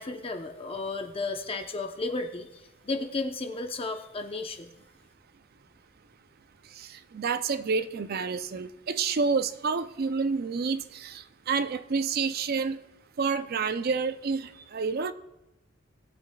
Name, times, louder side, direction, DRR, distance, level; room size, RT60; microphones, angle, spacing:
voice 1, 0.0-4.7, left 3 dB, 30° left, 4 dB, 0.8 m, -33 dB
voice 2, 6.8-12.8 13.2-15.1, right 5 dB, 50° right, 12 dB, 0.5 m, -29 dB
19.0 x 8.3 x 2.3 m, 0.96 s
head